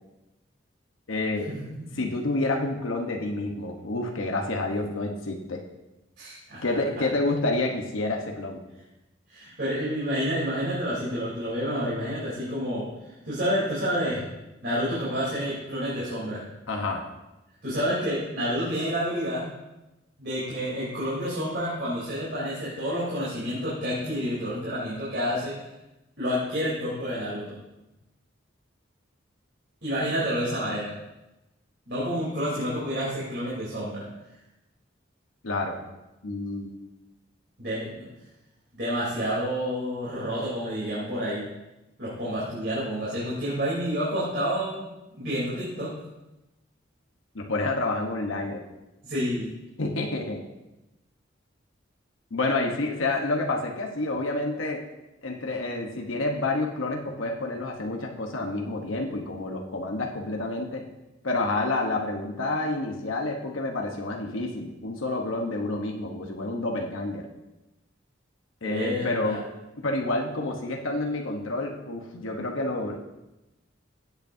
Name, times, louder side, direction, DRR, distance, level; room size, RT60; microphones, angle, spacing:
voice 1, 1.1-1.5 2.0-5.6 6.6-8.6 16.7-17.0 35.4-35.8 36.2-36.7 47.3-48.6 49.8-50.4 52.3-54.8 55.2-60.8 61.2-67.3 68.6-69.4 69.8-73.0, left 2 dB, 90° left, 1 dB, 1.1 m, -29 dB
voice 2, 6.2-6.7 9.3-14.2 14.6-16.4 17.6-19.4 20.2-25.5 26.2-27.4 29.8-30.9 31.9-34.0 37.6-38.0 38.7-41.4 42.0-44.9 45.1-45.9 49.0-49.5 68.6-69.4, equal, 55° right, -9 dB, 3.4 m, -29 dB
16.0 x 8.2 x 2.7 m, 0.97 s
head